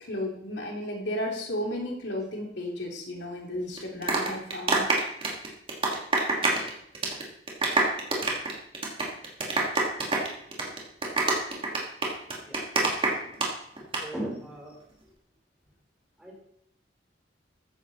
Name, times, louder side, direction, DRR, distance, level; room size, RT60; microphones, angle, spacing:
voice 1, 0.0-4.8 13.0-13.2, left 1 dB, 80° left, 0 dB, 3.1 m, -34 dB
sound 1, 3.8-6.7 6.9-7.2 7.5-13.5 13.8-14.0, right 3 dB, 30° right, 2.8 m, -25 dB
voice 2, 12.4-13.4 14.0-14.8 16.2-16.4, right 1 dB, 5° right, -2 dB, 4.6 m, -39 dB
14.5 x 10.5 x 4.3 m, 0.75 s
head